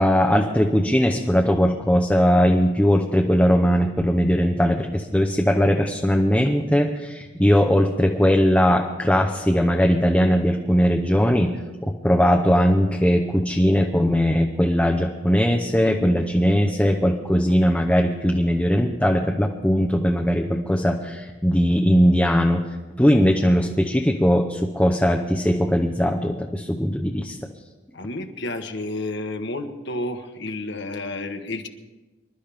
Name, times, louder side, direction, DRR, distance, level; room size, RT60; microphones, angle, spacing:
voice 1, 0.0-11.5 11.8-22.7 23.0-27.4, equal, 5° left, 2 dB, 0.7 m, -19 dB
voice 2, 27.9-31.7, left 2 dB, 65° left, 5 dB, 1.3 m, -31 dB
26.0 x 12.0 x 3.5 m, 1.2 s
head